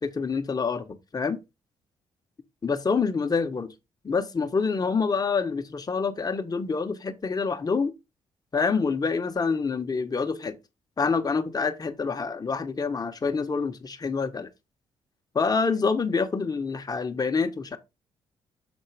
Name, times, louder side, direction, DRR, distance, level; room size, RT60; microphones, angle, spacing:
voice 1, 0.0-0.9 1.1-1.4 2.6-3.7 4.0-7.9 8.5-10.6 11.0-14.5 15.3-17.8, left 5 dB, 35° left, 1.4 m, -26 dB
7.2 x 3.6 x 5.0 m
supercardioid pair, 70°, 12 cm